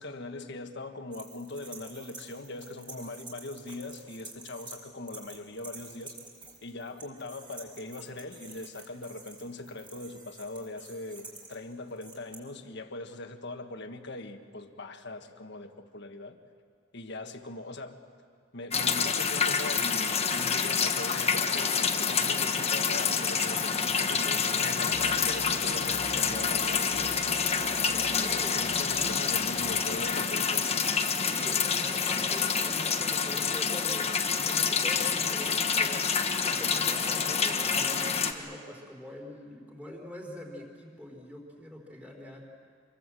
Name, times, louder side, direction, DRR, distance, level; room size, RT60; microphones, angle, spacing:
voice 1, 0.0-6.1 6.6-16.4 16.9-18.0 18.5-27.5 27.9-30.6, left 2 dB, 60° left, 6 dB, 1.5 m, -41 dB
sound 1, 1.1-4.8 5.1-12.3, right 4 dB, 25° right, 4.3 m, -48 dB
sound 2, 18.7-38.3, left 6 dB, 30° left, 1.3 m, -27 dB
sound 3, 24.9-30.2, right 1 dB, 80° right, 1.3 m, -48 dB
voice 2, 28.1-28.7 31.2-42.4, left 1 dB, 5° right, 0 dB, 3.9 m, -44 dB
26.5 x 22.5 x 7.7 m, 2.1 s
head